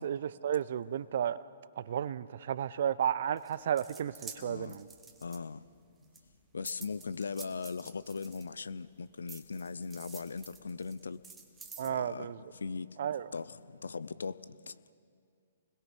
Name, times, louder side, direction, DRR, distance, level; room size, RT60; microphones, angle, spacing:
voice 1, 0.0-1.4 1.8-4.9 11.8-12.4 13.0-13.3, right 9 dB, 60° right, 0.7 m, -33 dB
sound 1, 3.4-5.8 6.1-8.8 9.3-11.9, right 5 dB, 10° right, 1.8 m, -50 dB
voice 2, 4.4-4.8 5.2-5.6 6.5-11.2 11.8-12.9 13.3-14.4 14.7-14.8, left 5 dB, 80° left, 0.6 m, -39 dB
29.0 x 21.0 x 5.4 m
hypercardioid pair, 125°, 0 cm